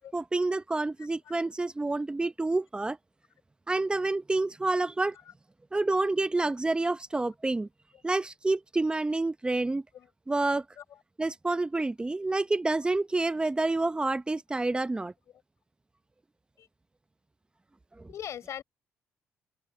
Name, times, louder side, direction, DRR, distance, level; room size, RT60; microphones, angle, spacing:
voice 1, 0.1-3.0 3.7-5.1 5.7-7.7 8.0-9.8 10.3-10.6 11.2-15.1, right 2 dB, 20° right, 0.9 m, -28 dB
voice 2, 1.0-1.3 5.1-5.3 9.9-10.1 10.8-11.0 16.6-16.7 18.1-18.6, left 10 dB, 65° left, 5.8 m, -42 dB
supercardioid pair, 70°, 5 cm